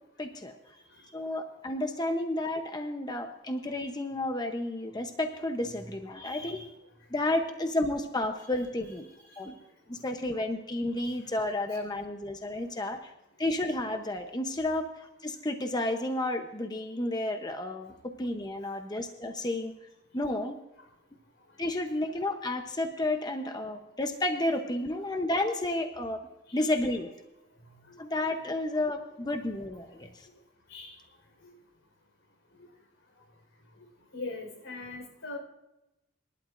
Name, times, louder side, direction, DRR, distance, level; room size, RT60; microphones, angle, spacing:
voice 1, 0.2-0.5 1.1-6.6 7.1-9.1 9.4-9.5 9.9-13.1 13.4-17.9 18.2-19.7 20.1-20.6 21.6-26.2 26.5-27.1 28.0-30.1, left 1 dB, 20° left, 5 dB, 0.8 m, -31 dB
voice 2, 6.1-6.7 9.3-9.5 11.7-11.8 26.5-26.7 27.9-28.0 30.7-31.0 31.4-31.5 34.1-35.4, left 3 dB, 85° left, 4 dB, 4.6 m, -42 dB
26.0 x 12.0 x 2.6 m, 0.93 s
head